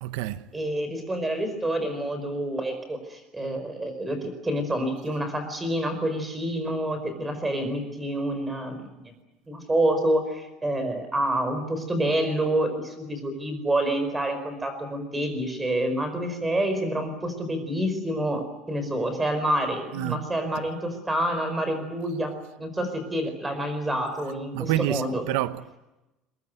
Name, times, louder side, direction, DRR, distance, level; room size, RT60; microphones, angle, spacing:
voice 1, 0.0-0.5 19.9-20.2 24.5-25.8, right 14 dB, 85° right, 0.9 m, -28 dB
voice 2, 0.5-8.9 9.5-25.2, right 1 dB, 10° right, 4.9 m, -28 dB
23.0 x 22.0 x 9.4 m
cardioid pair, 160°, 0 cm